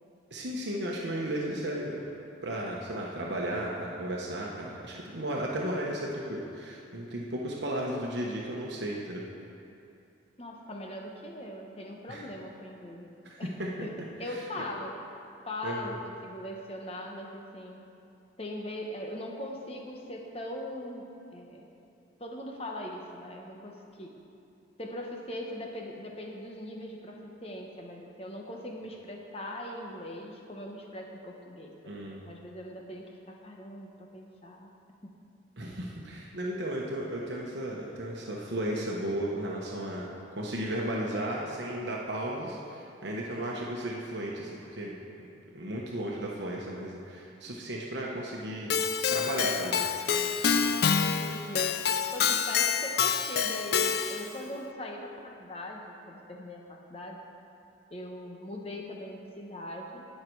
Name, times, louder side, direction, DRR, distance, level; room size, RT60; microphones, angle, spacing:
voice 1, 0.3-2.0 2.4-9.2 12.1-12.2 13.2-13.9 14.3-14.4 15.6-15.9 31.8-32.2 35.6-44.9 45.5-48.8 49.1-49.8, right 1 dB, 65° right, -3 dB, 1.2 m, -34 dB
voice 2, 10.4-13.5 13.8-13.9 14.2-14.9 15.5-17.8 18.4-21.0 21.3-21.7 22.2-24.1 24.8-34.7 35.0-35.1 51.0-51.8 52.1-57.2 57.9-60.1, left 1 dB, 30° left, 1 dB, 1.2 m, -40 dB
Keyboard (musical), 48.7-54.4, left 6 dB, 55° left, 0.4 m, -27 dB
19.0 x 6.7 x 4.7 m, 2.7 s
head